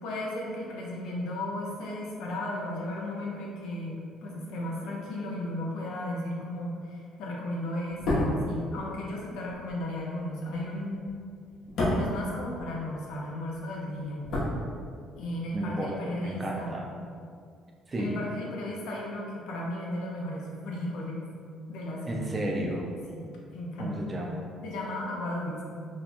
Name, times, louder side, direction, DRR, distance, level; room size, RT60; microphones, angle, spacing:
voice 1, 0.0-11.1 11.9-14.3 15.2-16.7 18.0-21.2 21.7-22.3 23.1-24.0 24.6-25.6, left 1 dB, 80° left, -3 dB, 0.7 m, -35 dB
sound 1, 7.9-13.2 13.4-15.3 15.5-15.7, left 1 dB, 60° left, 1.1 m, -32 dB
voice 2, 15.5-16.9 17.9-18.2 22.1-22.9 23.8-24.5, right 1 dB, 25° right, 0 dB, 0.5 m, -32 dB
2.9 x 2.3 x 4.2 m, 2.2 s
cardioid pair, 125°, 0 cm